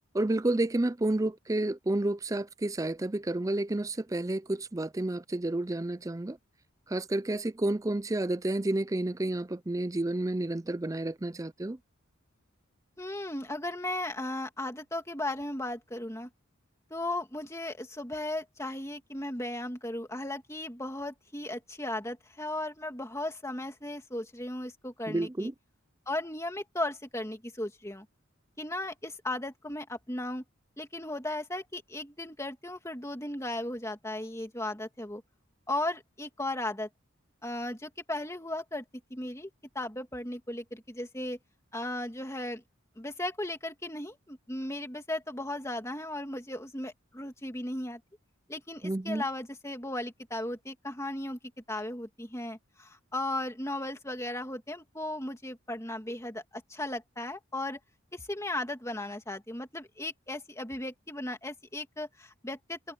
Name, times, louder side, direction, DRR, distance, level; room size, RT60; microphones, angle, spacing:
voice 1, 0.1-6.4 6.9-11.8 25.1-25.5 48.8-49.2, right 2 dB, 15° right, 0.5 m, -30 dB
voice 2, 13.0-16.3 16.9-25.5 26.1-28.1 28.6-30.4 30.8-35.2 35.7-36.9 37.4-38.8 39.1-39.5 39.7-41.4 41.7-42.6 43.0-48.0 48.5-51.4 51.7-57.8 58.1-62.9, left 1 dB, 15° left, 2.7 m, -36 dB
head